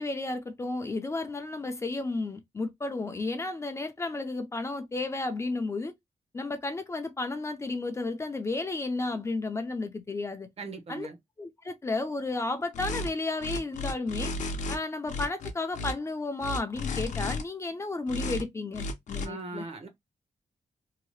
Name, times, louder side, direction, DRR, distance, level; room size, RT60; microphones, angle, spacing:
voice 1, 0.0-5.9 6.3-10.5 10.9-11.1 11.4-14.3 14.7-19.7, left 3 dB, 25° left, 0.4 m, -33 dB
voice 2, 10.6-11.2 19.2-19.9, right 3 dB, 55° right, 0.8 m, -39 dB
sound 1, 12.7-13.1 13.4-14.8 15.1-15.9 16.4-17.4 18.1-18.4 18.7-19.3, left 2 dB, 85° left, 0.6 m, -33 dB
2.8 x 2.2 x 3.0 m
wide cardioid pair, 155°, 12 cm